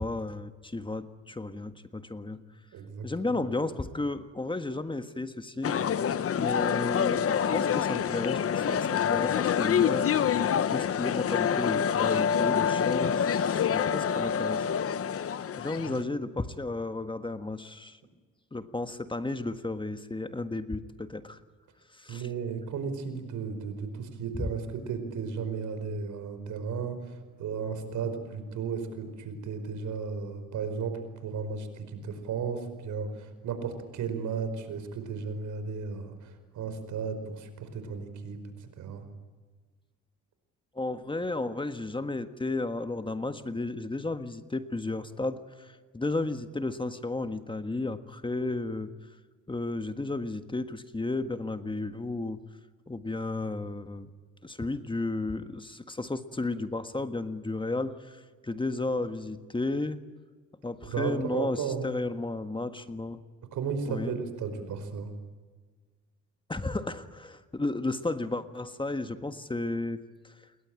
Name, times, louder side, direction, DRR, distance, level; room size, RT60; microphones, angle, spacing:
voice 1, 0.0-2.4 3.0-5.8 6.3-10.1 10.7-14.7 15.5-18.0 18.5-21.4 21.9-22.2 24.4-24.5 40.7-48.9 49.5-52.4 52.9-54.1 54.4-60.0 60.6-63.2 63.9-64.1 66.5-70.5, left 2 dB, 15° left, 9 dB, 1.6 m, -33 dB
voice 2, 2.7-3.4 15.8-16.0 22.1-39.0 60.8-61.8 63.5-65.1, right 5 dB, 75° right, 9 dB, 5.1 m, -34 dB
sound 1, 5.6-16.0, left 8 dB, 50° left, 1.0 m, -27 dB
28.5 x 21.5 x 8.9 m, 1.5 s
cardioid pair, 90°, 30 cm